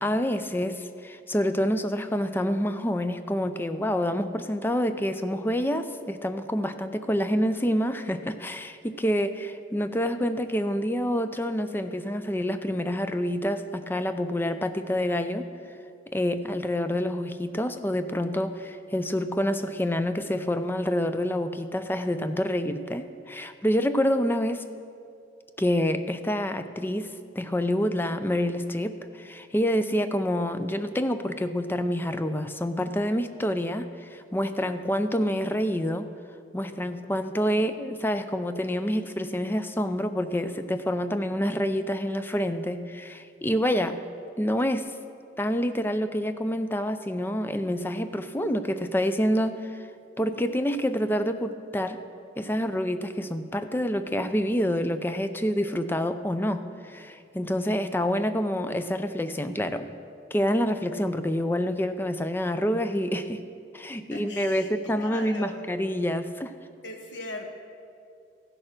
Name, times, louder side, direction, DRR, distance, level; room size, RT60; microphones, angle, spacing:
voice 1, 0.0-15.5 16.1-24.6 25.6-36.1 36.5-44.0 44.4-44.9 45.4-49.9 50.2-52.0 52.4-59.9 60.3-63.4 63.7-66.5, equal, 10° left, 10 dB, 0.4 m, -27 dB
voice 2, 63.9-65.6 66.8-67.5, left 2 dB, 70° left, 3 dB, 1.3 m, -39 dB
14.5 x 6.5 x 6.0 m, 2.4 s
head